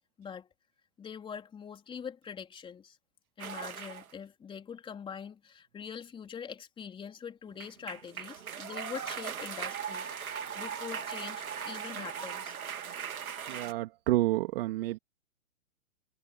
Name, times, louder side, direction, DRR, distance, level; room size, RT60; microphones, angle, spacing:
voice 1, 1.0-3.0 3.4-12.5, left 7 dB, 10° left, 3.8 m, -44 dB
sound 1, 3.4-4.1 7.5-13.7, right 7 dB, 85° right, 2.5 m, -39 dB
voice 2, 13.5-15.0, right 16 dB, 45° right, 2.6 m, -29 dB
hypercardioid pair, 145°, 41 cm